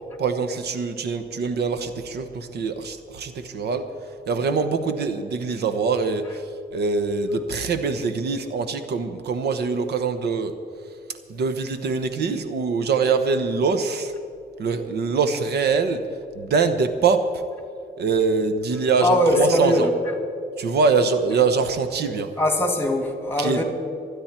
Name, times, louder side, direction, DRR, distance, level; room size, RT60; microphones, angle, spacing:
voice 1, 0.2-3.9 4.3-10.5 11.3-14.1 14.6-16.0 16.3-17.4 18.0-19.9 20.6-22.3 23.4-23.6, right 4 dB, 75° right, 9 dB, 1.0 m, -23 dB
voice 2, 19.0-20.0 22.4-23.6, left 1 dB, 10° left, 4 dB, 2.2 m, -21 dB
26.5 x 9.6 x 4.4 m, 2.5 s
cardioid pair, 125°, 17 cm